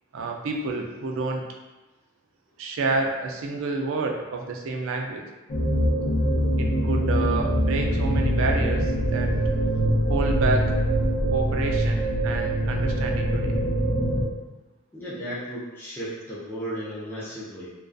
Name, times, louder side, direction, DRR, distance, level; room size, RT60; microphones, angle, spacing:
voice 1, 0.1-1.4 2.6-5.2 6.6-9.3 10.0-10.7 11.3-13.5, right 3 dB, 65° right, 2 dB, 0.3 m, -29 dB
sound 1, 5.5-14.2, right 1 dB, 60° left, 0.6 m, -23 dB
voice 2, 14.9-17.7, equal, 10° left, -10 dB, 0.4 m, -34 dB
2.3 x 2.3 x 2.4 m, 1.1 s
head